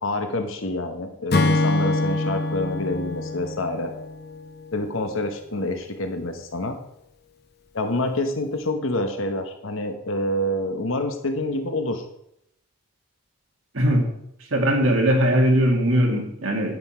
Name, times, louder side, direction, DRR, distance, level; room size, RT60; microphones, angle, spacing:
voice 1, 0.0-3.9 4.7-6.8 7.7-12.0, left 1 dB, 75° left, 6 dB, 1.0 m, -27 dB
Acoustic guitar / Strum, 1.3-4.7, left 2 dB, 50° left, 0.8 m, -25 dB
voice 2, 13.7-14.0 14.5-16.8, equal, 80° right, 1 dB, 2.2 m, -20 dB
9.5 x 9.4 x 4.4 m, 0.78 s
head